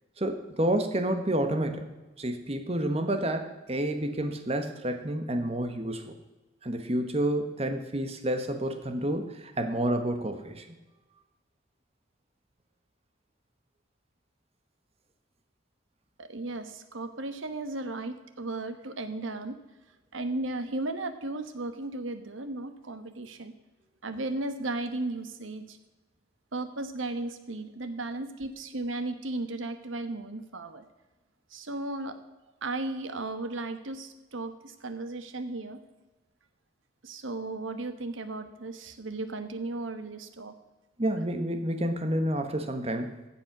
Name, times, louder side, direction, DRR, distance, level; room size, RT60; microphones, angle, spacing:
voice 1, 0.2-1.8 2.2-6.0 6.6-10.7 41.0-43.2, right 1 dB, 30° right, 6 dB, 1.3 m, -29 dB
voice 2, 16.2-19.6 20.1-23.5 24.0-25.8 26.5-30.8 31.5-32.2 32.6-35.8 37.0-40.5, right 2 dB, 85° right, 9 dB, 1.2 m, -35 dB
14.5 x 7.6 x 6.0 m, 1.1 s
head